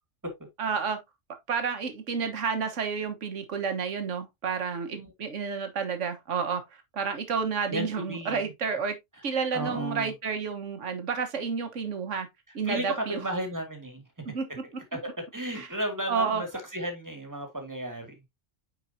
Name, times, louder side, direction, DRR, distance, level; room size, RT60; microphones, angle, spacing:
voice 1, 0.6-1.0 1.5-6.6 6.9-9.0 9.2-12.3 12.5-13.2 14.2-14.5 15.5-15.7 16.1-16.4, right 5 dB, 70° right, 1.6 m, -30 dB
voice 2, 7.7-8.4 9.5-10.1 12.6-14.0 14.9-16.5 16.7-18.2, right 1 dB, 15° right, 1.9 m, -34 dB
9.3 x 4.6 x 2.7 m
omnidirectional pair, 1.3 m